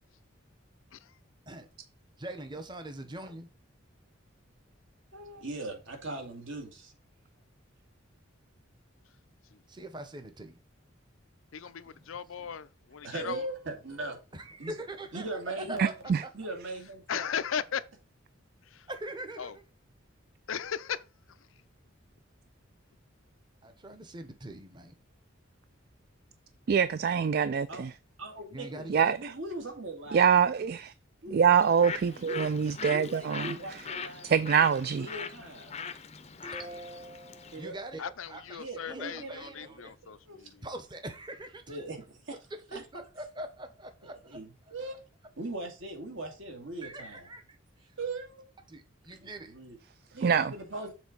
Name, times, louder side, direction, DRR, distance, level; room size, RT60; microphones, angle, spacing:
voice 1, 2.2-3.5 9.7-10.6 11.6-12.1 12.4-12.5 14.3-15.2 15.7-15.8 18.9-19.6 23.6-24.9 28.5-29.1 36.4-39.9 40.6-41.8 42.7-44.4 46.8-47.4 48.7-49.5, right 1 dB, 20° right, 1.0 m, -43 dB
voice 2, 5.1-6.9 13.0-14.2 14.6-14.7 15.1-15.9 16.3-17.4 27.7-27.8 28.2-30.4 31.2-31.4 32.1-34.3 34.7-35.7 37.5-37.8 38.5-39.7 40.0-40.4 41.7-42.4 42.7-42.8 44.0-45.0 45.4-47.3 48.0-48.5 49.1-49.8 50.1-50.9, right 2 dB, 65° right, 2.2 m, -40 dB
voice 3, 11.5-13.4 17.1-17.8 18.7-18.8 19.4-19.5 20.5-21.0 38.0-40.2, left 7 dB, 75° left, 0.5 m, -36 dB
voice 4, 15.8-16.2 26.7-27.9 28.9-29.3 30.1-30.9 31.3-33.8 34.2-35.1 50.2-50.5, right 7 dB, 50° right, 0.3 m, -25 dB
Bird, 31.5-37.7, left 6 dB, 30° left, 0.6 m, -41 dB
7.1 x 3.9 x 5.2 m
head